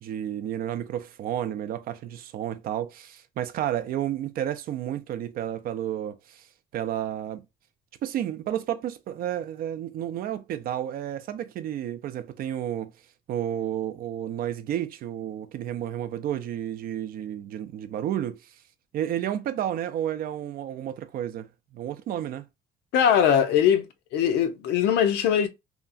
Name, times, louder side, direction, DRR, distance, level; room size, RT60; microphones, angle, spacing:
voice 1, 0.0-6.5 6.7-7.4 8.0-12.9 13.3-18.5 18.9-21.5 21.7-22.4, right 11 dB, 60° right, 0.4 m, -31 dB
voice 2, 22.9-25.5, left 8 dB, 80° left, 0.6 m, -21 dB
2.8 x 2.3 x 2.5 m
cardioid pair, 110°, 17 cm